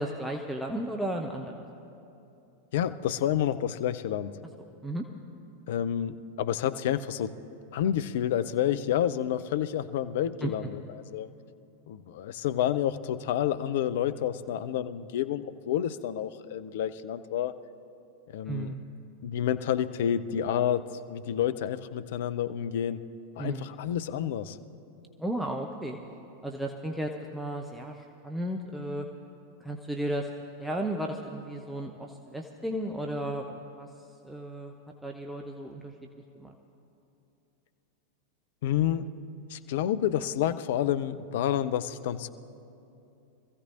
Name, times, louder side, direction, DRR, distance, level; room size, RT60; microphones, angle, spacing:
voice 1, 0.0-1.7 4.8-5.0 10.4-10.5 18.5-18.8 23.4-23.7 25.2-26.0 26.4-29.1 29.6-30.3 30.6-33.9 34.2-34.7 35.0-35.9 36.4-36.5, right 1 dB, 5° right, 1 dB, 0.7 m, -34 dB
voice 2, 2.7-4.3 5.7-7.4 7.7-11.3 11.9-17.5 18.3-18.8 19.2-23.0 23.4-24.6 38.6-39.1 39.5-42.3, left 10 dB, 55° left, 12 dB, 0.4 m, -29 dB
25.0 x 15.0 x 2.5 m, 2.8 s
figure-of-eight pair, 90°, 0 cm